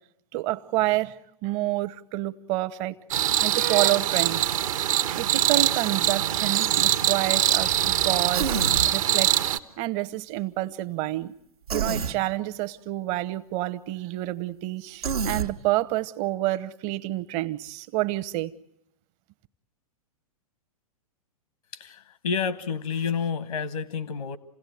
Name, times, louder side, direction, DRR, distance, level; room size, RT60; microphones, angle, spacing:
voice 1, 0.3-3.0 3.4-4.5 5.1-9.3 9.8-11.3 11.7-18.5, right 16 dB, 40° right, 0.9 m, -28 dB
sound 1, 3.1-9.6, right 11 dB, 65° right, 1.0 m, -23 dB
Human voice, 8.3-8.9 11.7-12.2 15.0-15.5, right 6 dB, 80° right, 1.2 m, -27 dB
voice 2, 21.7-24.4, left 6 dB, 80° left, 1.2 m, -29 dB
28.0 x 17.0 x 9.3 m
hypercardioid pair, 105°, 19 cm